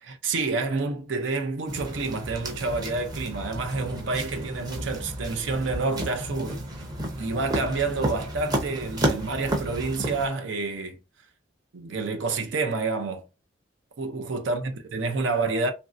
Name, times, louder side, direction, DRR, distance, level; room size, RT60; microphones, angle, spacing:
voice 1, 0.0-6.6 7.2-11.0 11.7-13.2 14.0-15.7, right 3 dB, 80° right, 0.5 m, -28 dB
sound 1, 1.7-10.3, right 1 dB, 20° right, 0.6 m, -32 dB
3.1 x 2.6 x 2.4 m
head